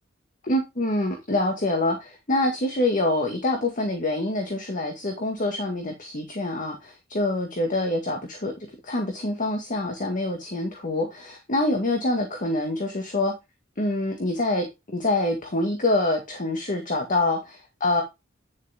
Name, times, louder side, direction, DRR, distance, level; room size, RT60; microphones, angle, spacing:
voice 1, 0.4-8.5 8.8-13.3 13.8-18.0, left 2 dB, 40° left, 3 dB, 1.8 m, -26 dB
10.0 x 7.0 x 3.5 m, 0.23 s
head